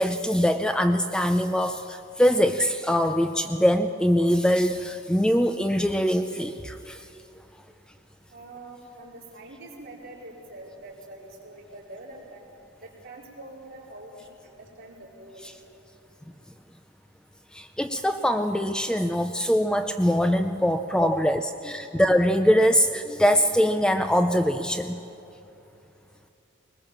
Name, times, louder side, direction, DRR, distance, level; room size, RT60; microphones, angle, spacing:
voice 1, 0.0-7.1 17.5-21.4 21.7-25.0, equal, 5° left, 8 dB, 0.4 m, -23 dB
voice 2, 8.3-12.5 12.8-15.5 21.1-21.3, right 2 dB, 50° right, -4 dB, 4.5 m, -44 dB
21.0 x 20.0 x 7.3 m, 2.8 s
head